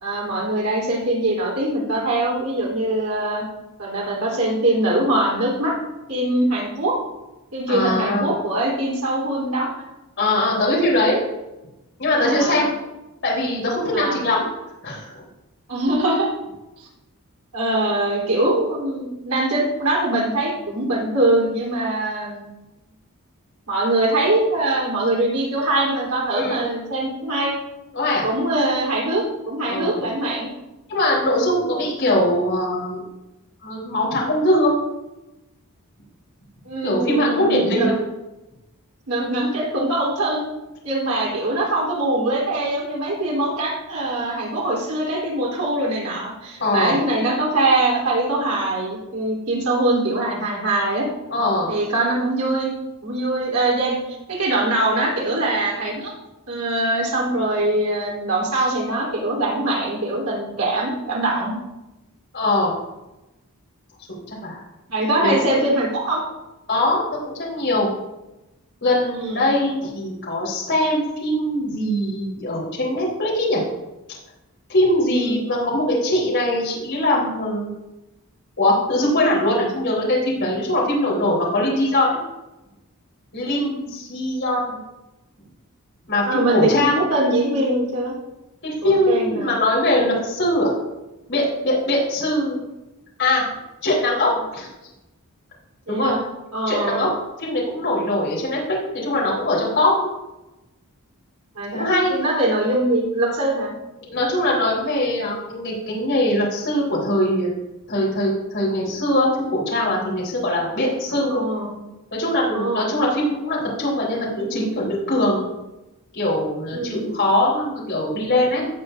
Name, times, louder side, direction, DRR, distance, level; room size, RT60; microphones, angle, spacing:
voice 1, 0.0-3.5 3.8-5.7 6.1-7.0 7.5-9.7 12.2-12.6 13.9-14.2 15.7-16.3 16.8-16.9 17.5-22.5 23.7-27.5 28.2-30.5 36.7-37.9 39.1-40.4 40.8-51.1 51.7-52.7 53.0-54.0 54.3-56.1 56.5-61.5 64.9-66.2 69.1-69.4 75.1-75.5 86.2-88.1 88.8-89.5 95.9-96.2 96.5-97.0 101.6-103.7 111.3-111.7 112.5-112.9 116.7-117.1, right 1 dB, 85° right, -4 dB, 3.6 m, -22 dB
voice 2, 7.7-8.3 10.2-11.2 12.0-12.7 13.2-14.4 14.8-15.3 26.3-26.6 27.9-28.3 29.7-30.0 30.9-33.0 33.6-34.7 36.8-38.0 46.6-47.0 51.3-51.7 62.3-62.7 64.1-64.6 65.0-65.6 66.7-67.9 68.8-73.6 74.7-77.7 78.6-82.2 83.3-84.8 86.1-87.0 88.6-90.7 91.3-92.6 93.2-93.4 93.8-94.7 95.9-96.2 96.7-97.1 97.4-98.6 98.9-100.1 101.7-102.1 104.0-107.5 107.9-111.4 112.1-115.5 116.1-118.7, left 1 dB, 55° left, -5 dB, 4.0 m, -21 dB
17.5 x 7.0 x 2.7 m, 0.99 s
head